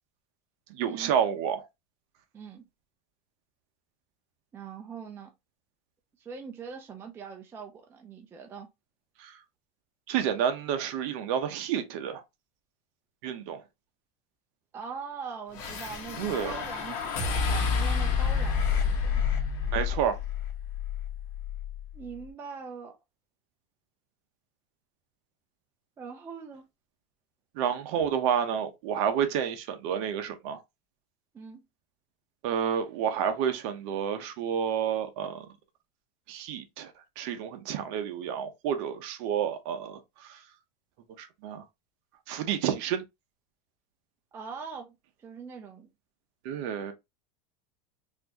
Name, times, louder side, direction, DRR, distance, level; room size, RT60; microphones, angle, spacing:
voice 1, 0.7-1.7 9.2-9.4 10.1-12.2 13.2-13.6 16.2-16.5 19.7-20.2 27.5-30.6 32.4-35.5 36.3-40.4 41.2-41.6 42.3-43.0 46.4-46.9, right 8 dB, 50° right, 0.8 m, -30 dB
voice 2, 2.3-2.6 4.5-5.3 6.2-8.7 14.7-19.2 21.9-23.0 26.0-26.7 31.3-31.6 44.3-45.9, right 6 dB, 10° right, 0.4 m, -42 dB
sound 1, 15.5-21.9, left 6 dB, 45° left, 1.1 m, -29 dB
4.2 x 2.6 x 2.8 m
supercardioid pair, 165°, 19 cm